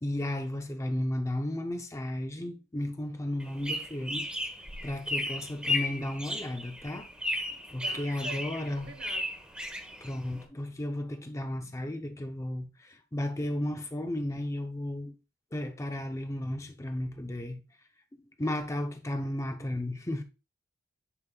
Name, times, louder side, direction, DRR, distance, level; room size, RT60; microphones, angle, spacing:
voice 1, 0.0-4.3 4.8-7.1 7.3-8.9 10.0-15.1 15.5-17.6 18.4-20.2, left 1 dB, 15° left, 0.6 m, -34 dB
sound 1, 3.4-10.4, left 1 dB, 5° right, 1.0 m, -35 dB
voice 2, 7.8-8.5 8.7-9.4, right 4 dB, 60° right, 1.1 m, -47 dB
9.8 x 5.3 x 2.3 m
head